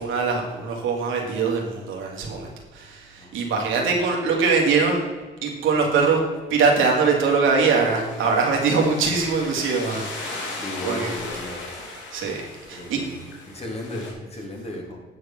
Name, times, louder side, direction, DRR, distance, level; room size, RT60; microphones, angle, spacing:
voice 1, 0.0-5.0 5.4-6.2 6.5-11.1 12.1-12.4 12.7-13.0, right 4 dB, 80° right, 0 dB, 2.6 m, -22 dB
voice 2, 3.2-3.6 9.1-9.2 10.6-11.7 12.7-15.0, left 1 dB, 30° left, 0 dB, 3.1 m, -35 dB
sound 1, 7.6-14.1, left 3 dB, 70° left, 3.2 m, -37 dB
9.4 x 6.7 x 6.0 m, 1.3 s
cardioid pair, 90°, 20 cm